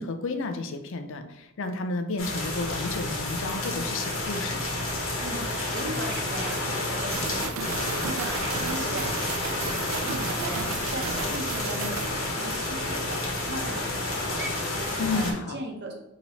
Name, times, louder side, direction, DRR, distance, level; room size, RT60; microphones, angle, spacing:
voice 1, 0.0-4.7 15.0-15.6, left 3 dB, 65° left, 7 dB, 0.5 m, -31 dB
sound 1, 2.2-15.3, left 2 dB, 85° left, 1.2 m, -30 dB
voice 2, 5.2-15.9, right 1 dB, 55° right, 2 dB, 0.8 m, -38 dB
sound 2, 7.1-12.1, right 6 dB, 70° right, 0.4 m, -35 dB
5.4 x 2.9 x 2.9 m, 0.87 s
head